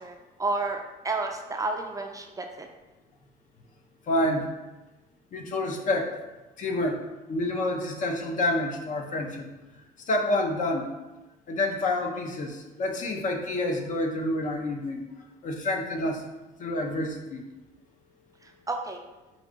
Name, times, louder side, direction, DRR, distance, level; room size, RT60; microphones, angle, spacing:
voice 1, 0.0-2.7 18.4-19.0, right 3 dB, 20° right, 3 dB, 0.3 m, -31 dB
voice 2, 4.1-4.5 5.3-6.1 6.6-7.0 7.3-9.5 10.1-10.9 11.5-15.0 15.4-16.2 16.6-17.4, left 1 dB, 50° left, 3 dB, 0.7 m, -28 dB
4.6 x 2.6 x 3.8 m, 1.1 s
cardioid pair, 110°, 17 cm